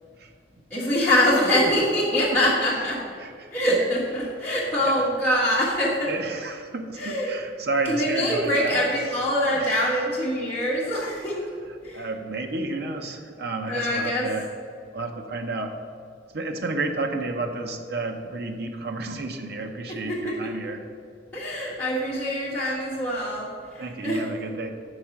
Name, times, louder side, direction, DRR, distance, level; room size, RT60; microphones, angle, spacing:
voice 1, 0.7-3.0 3.5-6.1 7.0-7.4 7.8-11.5 11.8-12.1 13.6-14.3 20.0-20.4 21.3-24.2, equal, 10° left, -11 dB, 1.3 m, -24 dB
voice 2, 3.2-3.5 4.8-5.1 6.1-8.8 9.5-9.9 11.9-14.5 14.9-15.8 16.3-20.8 23.8-24.7, right 3 dB, 55° right, 4 dB, 0.6 m, -31 dB
6.5 x 4.8 x 5.8 m, 2.2 s
head